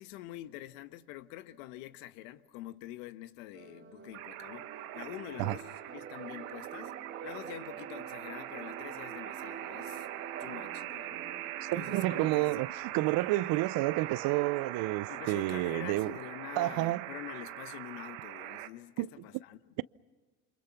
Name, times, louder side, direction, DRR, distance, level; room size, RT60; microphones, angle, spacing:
voice 1, 0.0-4.7 4.9-10.1 10.4-11.2 11.7-12.5 15.1-19.6, left 15 dB, 80° left, 1.3 m, -46 dB
sound 1, 3.5-12.7, right 7 dB, 30° right, 2.7 m, -47 dB
sound 2, 4.1-18.7, right 14 dB, 85° right, 1.5 m, -42 dB
voice 2, 11.6-16.2 16.6-17.1 19.0-19.1, right 18 dB, 60° right, 0.7 m, -30 dB
Wind instrument woodwind instrument, 12.5-16.4, right 4 dB, 15° right, 2.9 m, -56 dB
28.0 x 27.0 x 5.9 m
supercardioid pair, 110°, 39 cm